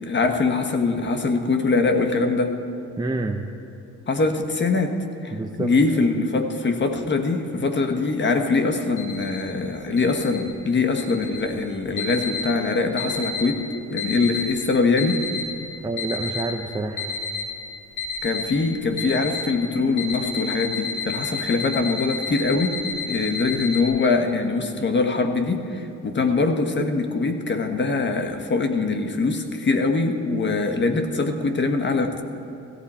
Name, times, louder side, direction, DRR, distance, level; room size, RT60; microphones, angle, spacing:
voice 1, 0.0-2.6 4.1-13.6 13.9-15.3 18.2-32.2, left 3 dB, 35° left, 6 dB, 1.3 m, -23 dB
voice 2, 3.0-3.4 5.3-6.1 15.8-17.1, right 2 dB, 15° right, 2 dB, 0.7 m, -28 dB
sound 1, 9.0-9.4 10.0-10.4 11.0-11.4 12.0-12.5 13.0-13.5 14.0-14.5 15.0-15.5 16.0-16.5 17.0-17.5 18.0-18.5 19.0-19.5 20.0-23.8, left 4 dB, 90° left, 1.7 m, -30 dB
16.5 x 15.0 x 4.3 m, 2.9 s
cardioid pair, 90°, 30 cm